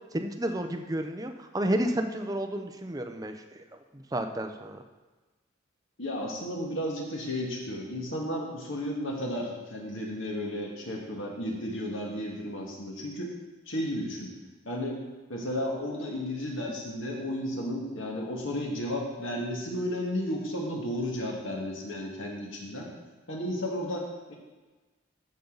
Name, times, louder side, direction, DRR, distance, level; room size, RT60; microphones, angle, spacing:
voice 1, 0.1-3.4 3.9-4.8, right 1 dB, 20° right, 5 dB, 0.6 m, -31 dB
voice 2, 6.0-13.3 13.7-14.3 14.7-15.0 15.3-22.9 23.3-24.3, left 1 dB, 70° left, -1 dB, 1.9 m, -33 dB
14.0 x 5.4 x 3.9 m, 1.2 s
head